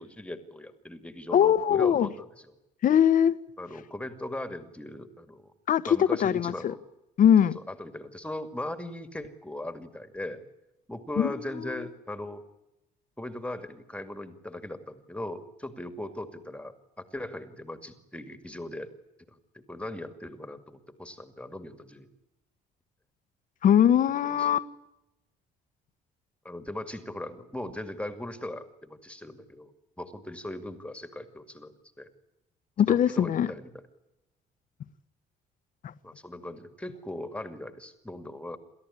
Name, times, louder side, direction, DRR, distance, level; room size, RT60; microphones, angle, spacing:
voice 1, 0.0-2.1 2.4-2.5 3.6-5.5 5.9-6.8 7.7-10.4 10.9-12.4 13.2-18.9 19.3-22.1 24.2-24.5 26.4-29.7 30.0-31.7 32.0-32.1 32.9-33.7 36.0-38.6, left 1 dB, 5° left, 2.2 m, -39 dB
voice 2, 1.3-2.1 2.8-3.3 5.7-6.7 7.2-7.5 11.2-11.8 23.6-24.7 32.8-33.5 35.8-35.9, left 9 dB, 50° left, 1.3 m, -22 dB
29.0 x 13.5 x 9.9 m
cardioid pair, 110°, 17 cm